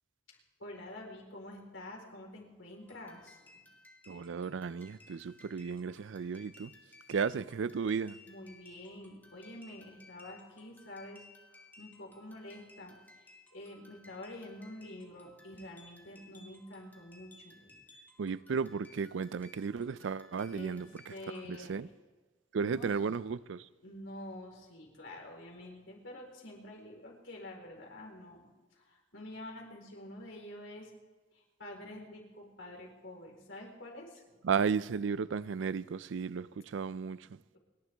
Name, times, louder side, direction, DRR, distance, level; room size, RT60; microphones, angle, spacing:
voice 1, 0.6-3.7 8.2-17.8 20.5-20.8 21.1-21.7 22.5-22.9 23.8-30.9 31.3-34.5, left 1 dB, 85° left, 4.0 m, -48 dB
sound 1, 2.8-21.7, left 2 dB, 10° left, 2.0 m, -59 dB
voice 2, 4.1-6.7 7.1-8.2 18.2-21.1 21.4-21.9 22.5-23.7 34.4-37.4, right 5 dB, 70° right, 0.4 m, -34 dB
29.0 x 11.0 x 3.5 m
head